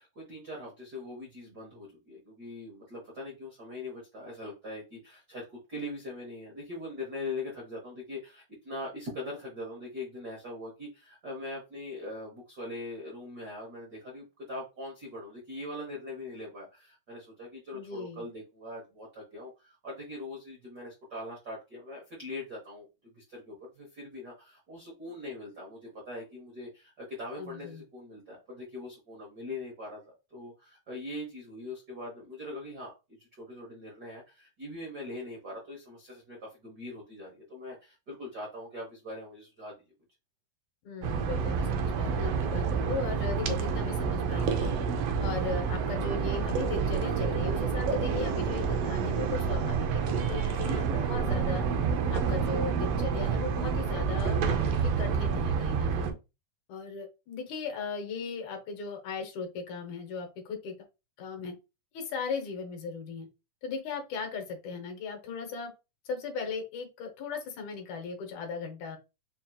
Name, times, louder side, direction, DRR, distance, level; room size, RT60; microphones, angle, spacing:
voice 1, 0.0-32.9 33.2-39.7, left 2 dB, 60° right, -2 dB, 1.0 m, -42 dB
voice 2, 17.7-18.3 27.4-27.8 40.8-44.7 45.2-51.6 52.1-56.1 56.7-60.7 61.2-61.5 61.9-63.3 63.6-65.7 66.1-69.0, left 5 dB, 75° left, 4 dB, 2.4 m, -37 dB
sound 1, 41.0-56.1, right 6 dB, 80° right, 1.4 m, -29 dB
5.5 x 2.8 x 2.3 m, 0.28 s
omnidirectional pair, 3.5 m